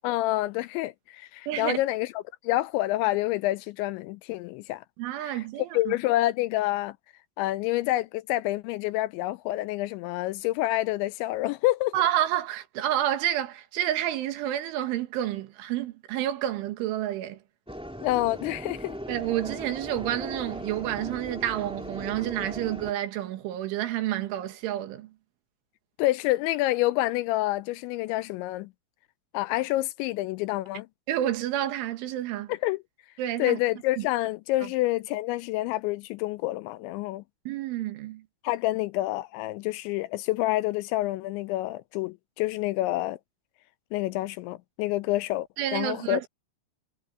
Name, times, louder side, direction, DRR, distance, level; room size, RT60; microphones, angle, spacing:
voice 1, 0.0-2.1 2.4-4.8 5.2-5.3 5.7-7.0 7.4-11.9 18.0-19.0 26.0-28.7 29.3-30.9 32.6-32.8 33.4-37.2 38.4-43.2 43.9-46.2, left 17 dB, 80° left, 2.8 m, -28 dB
voice 2, 1.5-1.8 5.0-6.0 11.9-17.4 19.1-25.1 31.1-32.5 33.2-33.6 34.0-34.1 34.6-34.7 37.5-38.3 45.6-46.3, right 12 dB, 80° right, 4.0 m, -29 dB
sound 1, 17.7-22.9, equal, ahead, 2.0 m, -38 dB
omnidirectional pair, 5.5 m